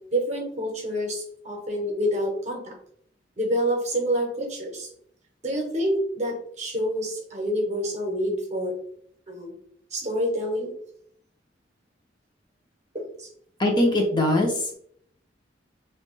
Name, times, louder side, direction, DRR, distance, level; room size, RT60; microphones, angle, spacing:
voice 1, 0.1-2.8 3.4-4.9 5.4-8.7 9.3-9.5 9.9-10.7 12.9-13.3, equal, 40° right, 1 dB, 0.8 m, -27 dB
voice 2, 13.6-14.7, left 1 dB, 25° left, 0 dB, 0.5 m, -21 dB
2.8 x 2.2 x 3.1 m, 0.63 s
head